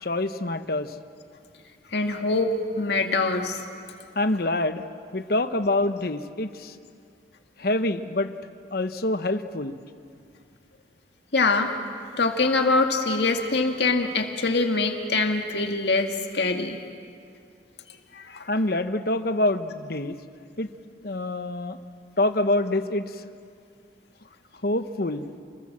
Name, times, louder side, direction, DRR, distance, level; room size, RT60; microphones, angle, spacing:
voice 1, 0.0-0.9 4.2-4.8 5.1-6.8 7.6-8.3 8.7-9.8 18.5-20.1 20.6-20.7 21.0-21.8 22.2-23.2 24.6-25.3, left 2 dB, 55° left, 9 dB, 1.1 m, -26 dB
voice 2, 1.9-3.6 11.3-11.7 12.2-16.8 18.1-18.5, left 3 dB, 75° left, 4 dB, 2.0 m, -24 dB
29.0 x 22.0 x 7.5 m, 2.3 s
head